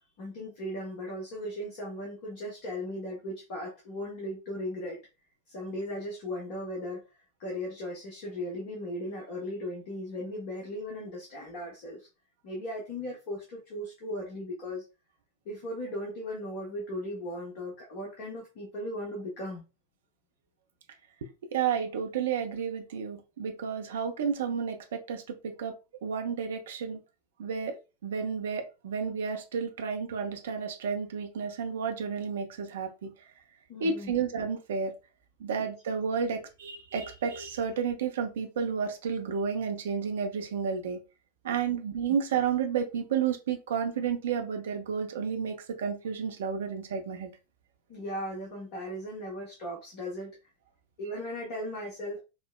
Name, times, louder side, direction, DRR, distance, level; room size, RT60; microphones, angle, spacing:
voice 1, 0.2-5.0 5.5-7.0 7.4-12.1 12.4-14.8 15.4-19.6 33.7-34.1 35.6-35.7 41.7-41.8 47.9-50.3 51.0-52.2, left 1 dB, 45° left, -1 dB, 1.0 m, -37 dB
voice 2, 21.5-25.7 26.0-27.0 27.4-27.8 28.0-33.1 33.8-34.9 35.4-41.0 41.4-47.3, right 6 dB, 60° right, 4 dB, 0.6 m, -31 dB
4.3 x 2.0 x 2.3 m, 0.29 s
figure-of-eight pair, 90°, 0 cm